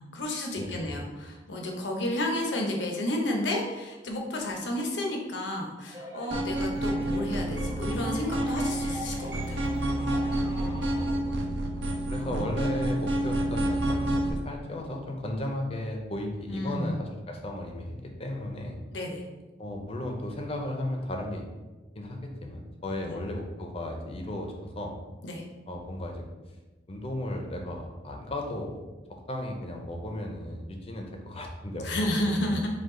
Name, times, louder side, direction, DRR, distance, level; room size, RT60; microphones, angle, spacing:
voice 1, 0.0-9.6 12.1-12.5 16.5-17.0 18.9-19.2 23.1-23.2 25.2-25.4 31.8-32.7, left 1 dB, 80° left, 1 dB, 0.8 m, -31 dB
voice 2, 0.6-0.9 10.6-18.8 19.6-21.4 21.9-24.9 25.7-26.2 26.9-32.7, left 1 dB, 30° left, 2 dB, 0.6 m, -35 dB
sound 1, 5.9-11.1, equal, 15° right, 0.6 m, -41 dB
sound 2, 6.3-14.3, right 1 dB, 75° right, 0.7 m, -29 dB
5.0 x 2.3 x 3.7 m, 1.2 s
head